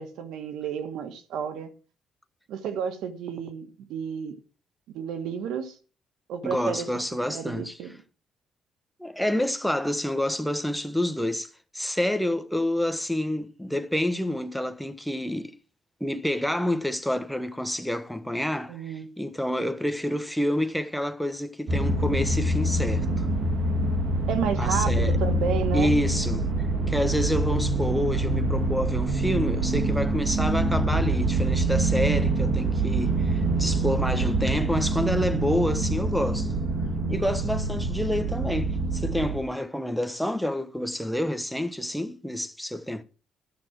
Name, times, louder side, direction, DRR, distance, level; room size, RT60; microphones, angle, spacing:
voice 1, 0.0-1.7 2.5-4.3 4.9-5.8 6.3-6.9 7.3-7.9 18.7-19.1 24.3-26.0, right 7 dB, 85° right, 1.7 m, -31 dB
voice 2, 6.4-7.8 9.0-15.5 16.0-23.3 24.6-25.2 25.7-36.5 37.1-43.0, left 1 dB, ahead, 1.2 m, -28 dB
sound 1, 21.7-39.4, right 2 dB, 60° right, 2.4 m, -25 dB
13.5 x 6.2 x 6.0 m
cardioid pair, 90°, 0 cm